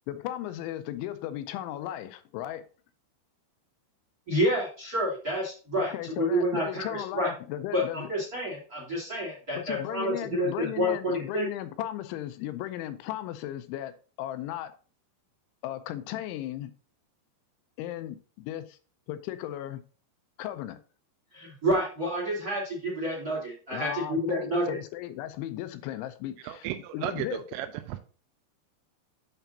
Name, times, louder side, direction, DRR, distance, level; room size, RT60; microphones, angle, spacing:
voice 1, 0.1-2.7 5.8-8.1 9.5-14.7 15.6-16.7 17.8-18.8 19.1-19.8 20.4-20.8 23.7-26.7 26.9-27.4, left 13 dB, 85° left, 2.9 m, -36 dB
voice 2, 4.3-5.9 6.2-7.3 7.7-11.5 21.3-24.6, equal, 25° right, 2.3 m, -29 dB
voice 3, 26.4-28.0, right 12 dB, 85° right, 2.8 m, -34 dB
8.1 x 6.8 x 2.7 m
omnidirectional pair, 5.5 m